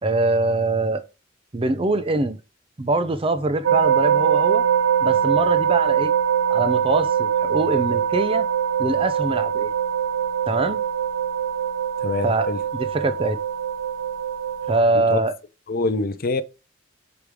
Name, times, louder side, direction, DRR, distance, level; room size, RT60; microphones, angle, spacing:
voice 1, 0.0-1.0 1.5-2.4 2.8-4.6 5.0-6.1 6.5-8.5 8.8-9.7 10.5-10.8 12.2-12.5 12.7-13.4 14.7-15.3, right 2 dB, 30° right, 0.6 m, -23 dB
sound 1, 3.6-14.8, right 8 dB, 85° right, 0.5 m, -22 dB
voice 2, 12.0-12.6 15.1-15.2 15.7-16.4, left 3 dB, 50° left, 0.6 m, -24 dB
5.1 x 5.0 x 4.8 m
head